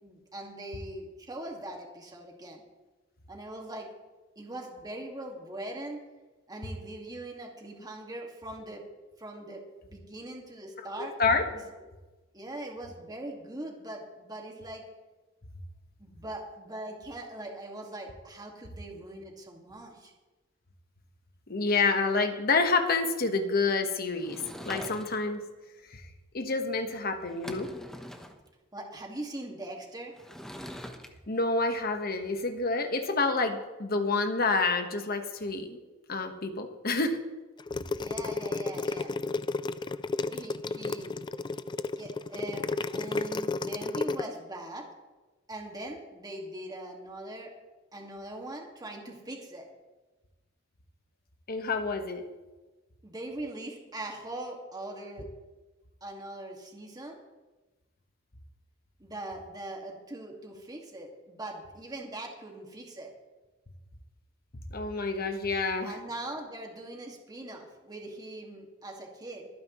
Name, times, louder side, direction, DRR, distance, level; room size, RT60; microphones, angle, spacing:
voice 1, 0.0-2.6 3.3-3.9 4.4-6.0 6.5-8.8 9.2-11.2 11.5-11.6 12.3-14.8 16.0-20.1 28.7-30.1 38.0-39.2 40.3-41.2 41.5-41.6 41.9-44.9 45.5-47.5 47.9-49.7 53.0-55.3 56.0-57.2 59.0-63.1 65.8-69.5, right 1 dB, 20° right, 1 dB, 2.0 m, -41 dB
voice 2, 11.0-11.5 21.5-25.4 25.9-26.1 26.3-27.7 31.3-35.8 36.1-37.2 51.5-52.2 64.7-65.9, left 3 dB, 50° left, 6 dB, 1.3 m, -28 dB
Sliding door / Wood, 24.2-25.4 26.9-27.0 27.3-28.4 30.2-31.1, equal, 5° left, 1.0 m, -43 dB
sound 1, 37.6-44.2, left 3 dB, 25° left, 0.3 m, -32 dB
24.0 x 9.3 x 3.1 m, 1.2 s
head